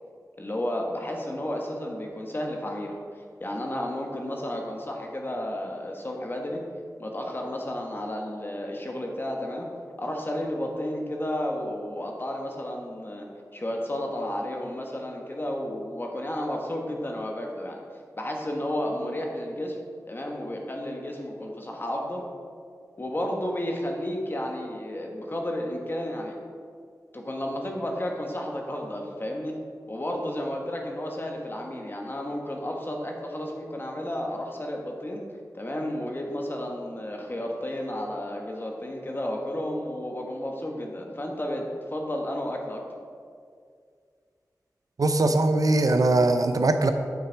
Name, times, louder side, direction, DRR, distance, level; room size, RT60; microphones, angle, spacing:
voice 1, 0.4-6.6 7.0-9.7 10.0-13.3 13.5-17.8 18.1-19.8 20.1-22.2 23.0-26.3 27.1-29.6 29.9-35.2 35.5-42.9, left 1 dB, 35° left, 1 dB, 1.3 m, -32 dB
voice 2, 45.0-46.9, right 2 dB, 70° right, 7 dB, 0.6 m, -21 dB
8.6 x 6.7 x 4.6 m, 2.2 s
wide cardioid pair, 85°, 6 cm